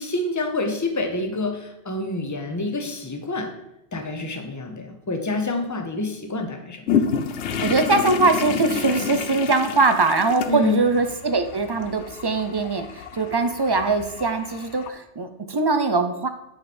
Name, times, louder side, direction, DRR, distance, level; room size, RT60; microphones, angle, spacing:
voice 1, 0.0-3.5 3.9-7.0 10.5-10.8, left 2 dB, 15° left, 4 dB, 0.8 m, -27 dB
sound 1, 6.9-14.9, left 6 dB, 70° left, 0.9 m, -29 dB
voice 2, 7.6-16.3, right 3 dB, 40° right, 8 dB, 0.3 m, -22 dB
9.1 x 5.0 x 4.3 m, 0.89 s
omnidirectional pair, 1.2 m